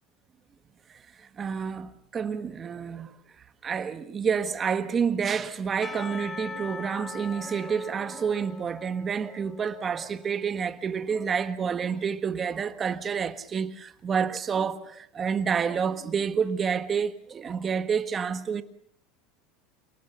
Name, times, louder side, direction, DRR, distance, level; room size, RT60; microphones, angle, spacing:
voice 1, 0.9-3.1 3.6-18.6, right 6 dB, 20° right, 1.5 m, -29 dB
Percussion / Church bell, 5.8-10.9, left 4 dB, 15° left, 1.4 m, -42 dB
28.5 x 18.5 x 6.9 m
supercardioid pair, 150°, 0 cm